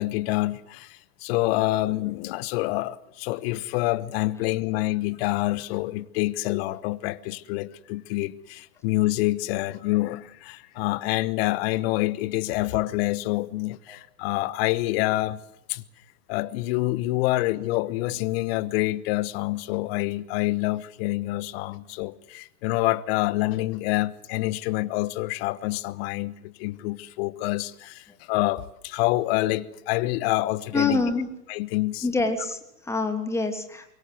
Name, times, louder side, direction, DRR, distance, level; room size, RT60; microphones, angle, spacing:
voice 1, 0.0-15.4 15.7-15.8 16.3-31.0 31.5-32.0, left 18 dB, 40° left, 1.2 m, -27 dB
voice 2, 30.7-31.3 32.0-33.8, left 3 dB, 5° left, 2.9 m, -26 dB
25.0 x 23.0 x 7.8 m
figure-of-eight pair, 110°, 49 cm